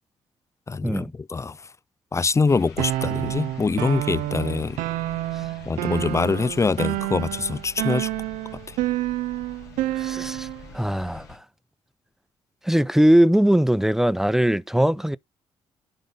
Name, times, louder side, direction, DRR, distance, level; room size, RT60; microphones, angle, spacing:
voice 1, 0.7-1.6 2.1-4.8 5.7-8.1 8.7-8.8, left 4 dB, 20° left, 0.4 m, -24 dB
sound 1, 2.5-11.4, left 4 dB, 85° left, 2.7 m, -45 dB
sound 2, 2.8-10.7, right 16 dB, 75° right, 0.5 m, -29 dB
voice 2, 9.9-10.5 10.7-11.4 12.6-15.2, equal, 5° right, 0.7 m, -20 dB
11.5 x 3.9 x 3.9 m
hypercardioid pair, 45°, 14 cm